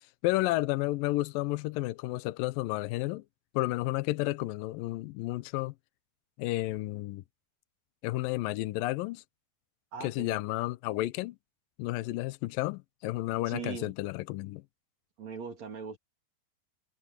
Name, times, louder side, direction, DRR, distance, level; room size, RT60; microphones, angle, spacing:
voice 1, 0.0-3.2 3.5-5.7 6.4-7.2 8.0-9.2 10.0-11.4 11.8-14.6, left 18 dB, 80° left, 2.1 m, -31 dB
voice 2, 9.9-10.4 13.5-13.9 15.2-16.0, right 6 dB, 45° right, 4.3 m, -40 dB
omnidirectional pair, 4.7 m